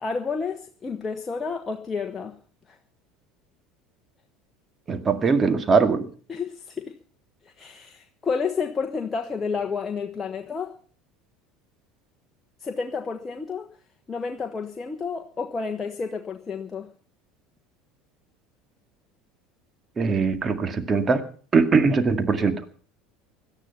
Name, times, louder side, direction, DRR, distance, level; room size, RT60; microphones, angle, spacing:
voice 1, 0.0-2.4 2.7-2.8 6.3-6.9 7.4-10.8 12.6-13.7 14.1-16.9, left 5 dB, 25° left, 4 dB, 1.3 m, -30 dB
voice 2, 4.9-6.1 20.0-21.2 21.5-22.6, right 4 dB, 30° right, 9 dB, 2.0 m, -21 dB
17.5 x 12.0 x 5.7 m, 0.43 s
hypercardioid pair, 70°, 0 cm